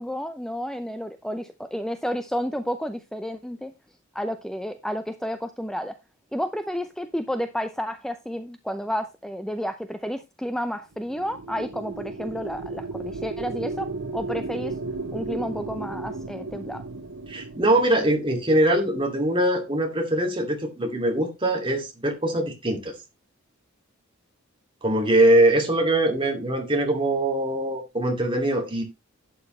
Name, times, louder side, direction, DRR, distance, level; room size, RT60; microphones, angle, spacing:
voice 1, 0.0-3.7 4.1-6.0 6.3-14.8 15.1-16.8, equal, 5° left, 0.5 m, -31 dB
sound 1, 10.9-19.5, right 3 dB, 85° right, 1.2 m, -35 dB
voice 2, 17.3-22.9 24.8-28.8, right 1 dB, 25° right, 2.4 m, -22 dB
11.5 x 8.6 x 3.2 m
head